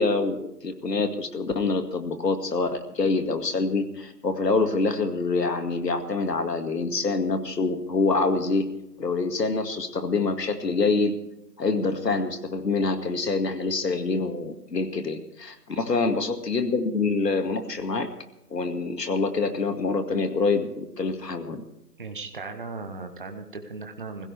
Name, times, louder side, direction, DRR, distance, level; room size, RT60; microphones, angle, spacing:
voice 1, 0.0-8.7 9.0-11.2 11.6-18.1 18.5-21.6, left 3 dB, 85° left, 7 dB, 2.2 m, -26 dB
voice 2, 22.0-24.3, right 3 dB, 30° right, 5 dB, 1.0 m, -37 dB
21.0 x 16.0 x 3.5 m, 0.87 s
hypercardioid pair, 170°, 48 cm